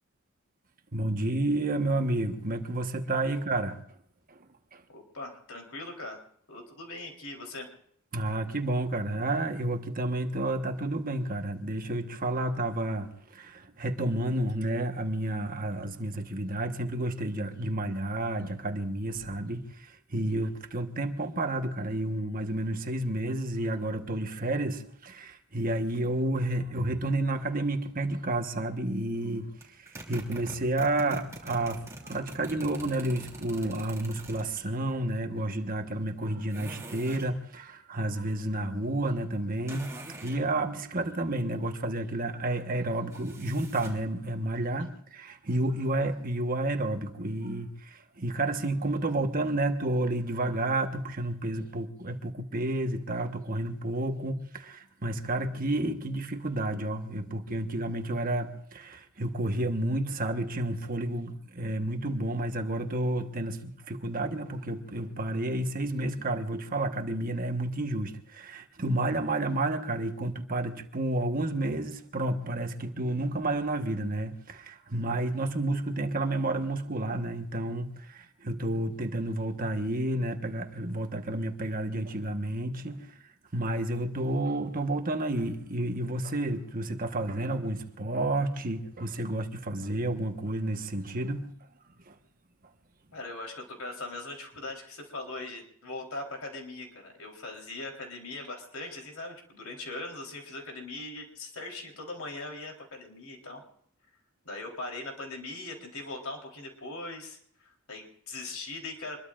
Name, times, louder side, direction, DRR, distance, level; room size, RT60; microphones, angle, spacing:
voice 1, 0.9-3.8 4.3-4.4 4.7-4.8 8.1-83.2 83.5-91.5 92.1-92.2, right 1 dB, 40° right, 1.3 m, -31 dB
voice 2, 4.9-6.2 6.5-7.7 93.1-103.6 104.4-109.2, left 2 dB, 85° left, 3.8 m, -40 dB
sound 1, 29.6-34.7 36.5-37.3 39.7-40.4 43.1-44.1, right 1 dB, 15° right, 3.0 m, -44 dB
25.5 x 21.5 x 2.5 m
head